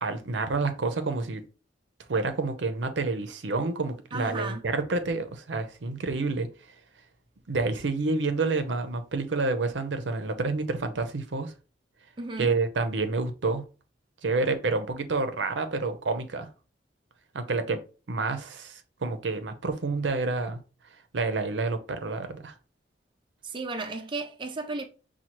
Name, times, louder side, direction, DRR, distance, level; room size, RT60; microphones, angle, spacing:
voice 1, 0.0-1.4 2.1-6.5 7.5-11.5 12.4-13.6 14.2-16.5 17.3-17.8 18.1-20.6 21.1-22.5, right 3 dB, 80° right, 0.6 m, -28 dB
voice 2, 4.1-4.6 12.2-12.5 23.4-24.8, right 3 dB, 25° right, 0.4 m, -34 dB
5.7 x 2.3 x 3.0 m
head